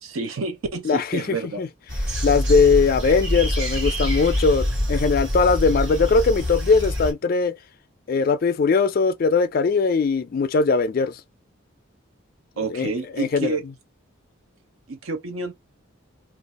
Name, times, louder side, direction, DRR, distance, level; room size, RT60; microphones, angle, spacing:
voice 1, 0.0-1.6 12.6-13.6 14.9-15.5, right 3 dB, 75° right, 0.6 m, -29 dB
voice 2, 0.8-1.7 2.2-7.6 8.1-11.2 12.7-13.6, left 4 dB, 45° left, 0.3 m, -20 dB
sound 1, 1.9-7.1, equal, 60° right, 1.4 m, -25 dB
2.5 x 2.3 x 4.0 m
head